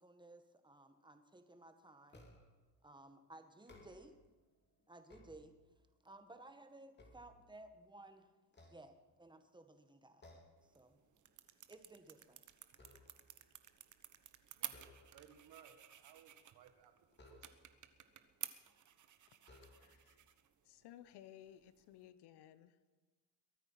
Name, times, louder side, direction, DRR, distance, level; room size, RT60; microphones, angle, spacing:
voice 1, 0.0-2.2 2.8-4.1 4.9-5.5 6.0-8.3 8.6-10.2 10.7-11.0 11.7-12.4, right 2 dB, 10° right, 8 dB, 1.6 m, -58 dB
sound 1, 2.1-2.7 3.5-4.3 4.8-5.9 6.4-7.9 8.5-9.5 10.2-10.7 11.1-11.3 11.7-13.4 14.6-15.5 17.1-17.9 18.7-18.8 19.4-20.2, left 2 dB, 25° left, 3.3 m, -63 dB
sound 2, 10.6-22.1, right 10 dB, 45° right, 1.2 m, -54 dB
voice 2, 14.5-16.9 17.3-17.6, right 9 dB, 65° right, 8 dB, 1.6 m, -63 dB
voice 3, 19.6-20.2 20.6-22.9, left 11 dB, 75° left, 13 dB, 1.0 m, -59 dB
22.5 x 9.2 x 5.7 m, 1.3 s
cardioid pair, 95°, 41 cm